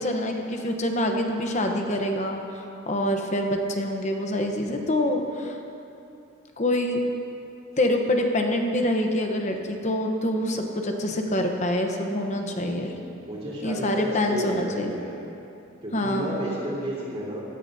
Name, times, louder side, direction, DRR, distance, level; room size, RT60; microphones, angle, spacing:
voice 1, 0.0-5.6 6.6-7.0 7.8-12.9 13.6-14.9 15.9-16.5, left 1 dB, 35° left, 3 dB, 0.9 m, -26 dB
voice 2, 13.3-15.2 15.8-17.4, equal, 30° right, -6 dB, 3.4 m, -32 dB
17.5 x 13.5 x 2.8 m, 2.8 s
head